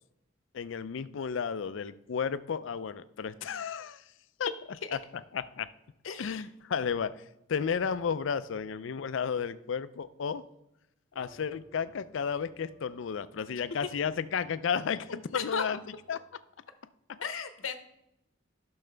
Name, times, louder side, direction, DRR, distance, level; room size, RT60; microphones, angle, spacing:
voice 1, 0.5-4.0 4.4-4.5 4.9-5.0 5.3-5.7 6.2-7.2 7.5-10.4 11.2-15.8 16.1-16.2, left 6 dB, 70° left, 15 dB, 0.4 m, -33 dB
voice 2, 6.0-6.5 15.3-15.6 17.2-17.7, left 6 dB, 85° left, 10 dB, 0.8 m, -35 dB
sound 1, 11.1-16.3, right 1 dB, 80° right, 1.7 m, -61 dB
10.5 x 6.3 x 3.3 m, 0.85 s
head